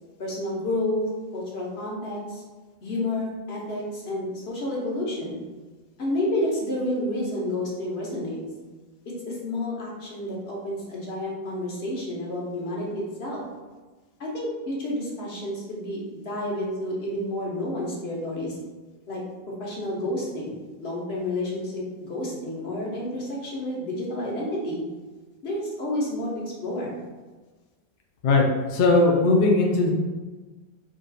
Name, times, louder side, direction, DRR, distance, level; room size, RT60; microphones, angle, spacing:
voice 1, 0.2-2.4 2.8-5.4 6.0-8.4 9.0-13.4 14.2-18.6 19.1-19.2 19.6-24.8 25.4-26.3 26.6-27.0, left 1 dB, 80° left, -3 dB, 1.2 m, -30 dB
voice 2, 28.7-29.9, left 3 dB, 60° left, 0 dB, 0.6 m, -19 dB
3.7 x 2.4 x 3.9 m, 1.3 s
omnidirectional pair, 1.1 m